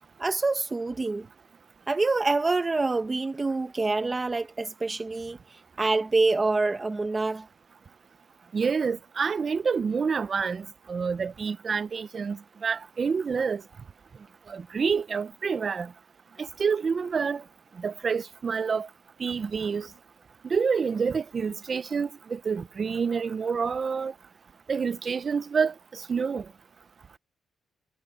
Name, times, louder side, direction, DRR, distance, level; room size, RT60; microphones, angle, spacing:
voice 1, 0.2-1.3 1.9-5.4 5.8-7.5, right 3 dB, 20° right, 1.6 m, -26 dB
voice 2, 8.5-13.6 14.5-15.9 16.4-17.4 17.8-18.9 19.2-19.9 20.4-24.1 24.7-26.4, right 5 dB, 35° right, 0.7 m, -28 dB
cardioid pair, 130°, 0 cm